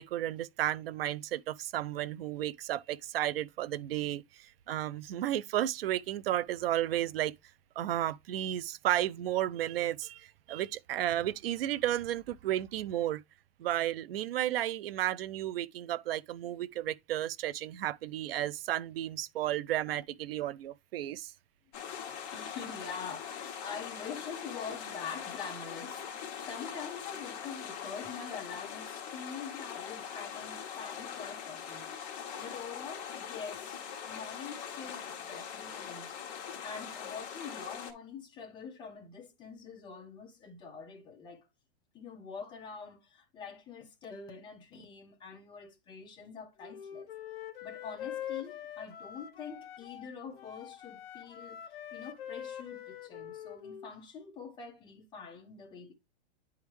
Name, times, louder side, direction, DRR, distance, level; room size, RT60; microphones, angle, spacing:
voice 1, 0.0-4.2 4.7-7.3 7.8-13.2 13.6-21.3, right 13 dB, 55° right, 0.5 m, -33 dB
sound 1, 21.7-37.9, left 8 dB, 40° left, 1.4 m, -42 dB
voice 2, 22.3-26.1 26.4-41.5 41.9-47.1 47.6-55.9, left 6 dB, 15° left, 1.0 m, -45 dB
Wind instrument woodwind instrument, 46.6-50.1 50.4-53.9, left 10 dB, 55° left, 1.0 m, -44 dB
10.0 x 3.6 x 3.0 m
supercardioid pair, 165°, 35 cm